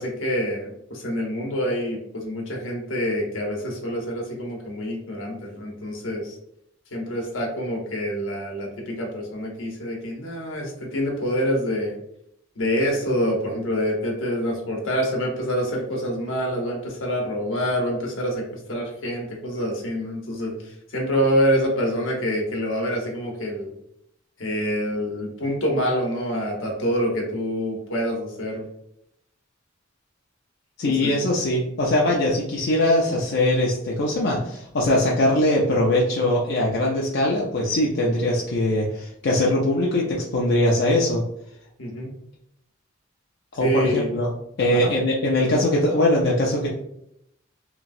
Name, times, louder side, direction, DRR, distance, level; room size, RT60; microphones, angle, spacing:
voice 1, 0.0-6.4 6.9-11.9 12.6-23.8 24.4-28.6 30.8-31.2 41.8-42.1 43.6-44.1 44.7-44.9, equal, 80° left, -1 dB, 0.9 m, -26 dB
voice 2, 30.8-41.2 43.6-44.3 44.6-46.7, left 1 dB, 60° left, -3 dB, 0.5 m, -21 dB
3.0 x 2.4 x 2.5 m, 0.75 s
head